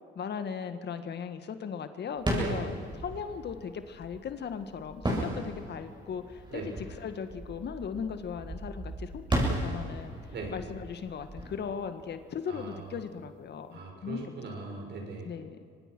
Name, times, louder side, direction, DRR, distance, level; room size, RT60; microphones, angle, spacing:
voice 1, 0.1-2.7 3.0-9.2 9.6-10.2 10.5-14.3 15.2-15.6, left 6 dB, 60° left, 9 dB, 1.7 m, -38 dB
sound 1, 2.2-12.8, right 1 dB, 25° right, 7.5 m, -35 dB
voice 2, 12.5-13.0 13.7-15.3, right 4 dB, 60° right, 2 dB, 6.0 m, -39 dB
24.5 x 20.0 x 6.2 m, 2.2 s
cardioid pair, 90°, 20 cm